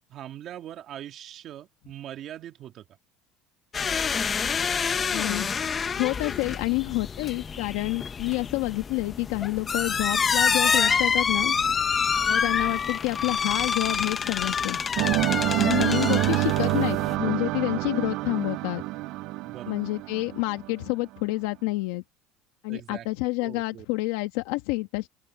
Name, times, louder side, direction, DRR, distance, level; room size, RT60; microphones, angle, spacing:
voice 1, 0.0-2.9 11.3-11.5 15.4-15.8 19.4-19.8 22.7-23.1 23.4-23.9, right 11 dB, 40° right, 2.5 m, -41 dB
sound 1, 3.7-17.2, left 6 dB, 25° left, 0.7 m, -27 dB
voice 2, 5.1-5.5 5.9-11.6 12.3-14.8 15.6-18.8 19.7-22.0 22.6-25.1, left 22 dB, 80° left, 1.4 m, -28 dB
sound 2, 15.0-20.9, right 19 dB, 60° right, 0.4 m, -27 dB
open air
cardioid pair, 150°, 0 cm